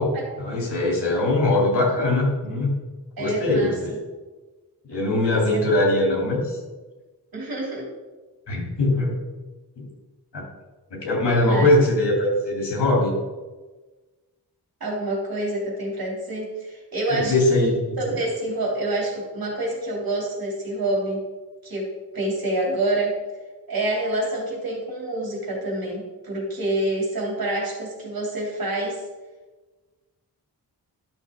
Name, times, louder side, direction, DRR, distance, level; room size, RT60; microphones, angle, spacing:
voice 1, 0.0-2.8 3.2-4.0 4.9-6.6 8.5-9.2 9.8-9.9 10.3-10.4 10.9-13.1 17.1-18.2, left 1 dB, 85° left, -3 dB, 3.1 m, -21 dB
voice 2, 3.2-3.7 5.3-5.6 7.3-7.9 11.3-11.7 14.8-17.7 18.0-21.2 21.6-21.9 22.1-23.2 23.7-29.0, right 1 dB, 60° right, -2 dB, 3.1 m, -27 dB
12.0 x 6.6 x 3.7 m, 1.3 s
wide cardioid pair, 135°, 40 cm